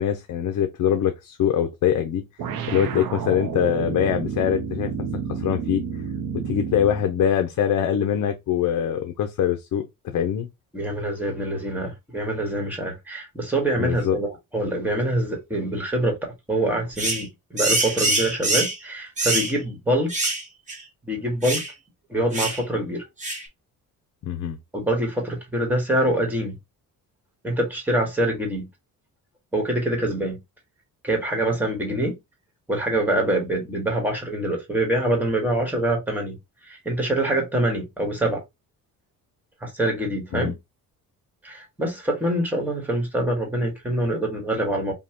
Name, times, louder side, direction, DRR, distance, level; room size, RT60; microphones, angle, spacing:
voice 1, 0.0-2.2 2.7-4.9 5.3-5.8 6.4-10.5 13.8-14.2 24.2-24.6 40.3-40.5, left 9 dB, 60° left, 0.7 m, -23 dB
sound 1, 2.4-7.1, right 6 dB, 80° right, 0.8 m, -30 dB
voice 2, 10.7-20.1 21.0-21.6 22.1-23.0 24.7-26.6 27.4-28.7 29.5-30.4 31.0-32.2 32.7-36.4 36.6-38.4 39.6-40.6 41.4-44.9, right 1 dB, 5° right, 1.3 m, -25 dB
sound 2, 17.0-17.2 17.6-18.8 19.2-19.5 20.1-20.4 20.7-20.8 21.4-21.7 22.3-22.6 23.2-23.5, right 2 dB, 20° right, 1.0 m, -24 dB
5.4 x 2.2 x 2.9 m
cardioid pair, 170°, 35 cm